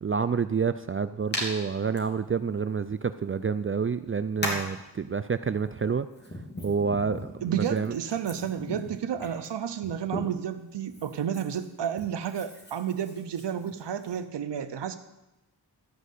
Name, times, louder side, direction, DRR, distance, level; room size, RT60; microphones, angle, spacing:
voice 1, 0.0-6.1 6.6-8.0, right 6 dB, 30° right, 12 dB, 0.4 m, -28 dB
Hands, 1.3-1.5 1.9-2.0 3.3-3.4 4.4-4.7 5.7-10.5 10.9-14.2, left 1 dB, 25° left, 3.0 m, -38 dB
voice 2, 7.4-15.0, right 8 dB, 80° right, 9 dB, 0.8 m, -31 dB
13.0 x 5.2 x 8.3 m, 0.98 s
wide cardioid pair, 70°, 42 cm